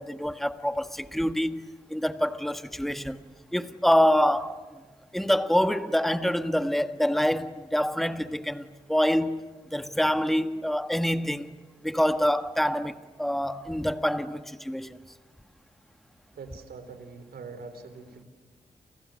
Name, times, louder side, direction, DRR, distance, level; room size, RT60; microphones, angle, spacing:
voice 1, 0.0-3.2 3.5-4.8 5.1-9.4 9.7-11.5 11.8-15.0, equal, ahead, 1.5 m, -26 dB
voice 2, 16.3-18.2, right 4 dB, 85° right, 4.1 m, -43 dB
30.0 x 29.0 x 6.5 m
cardioid pair, 85°, 16 cm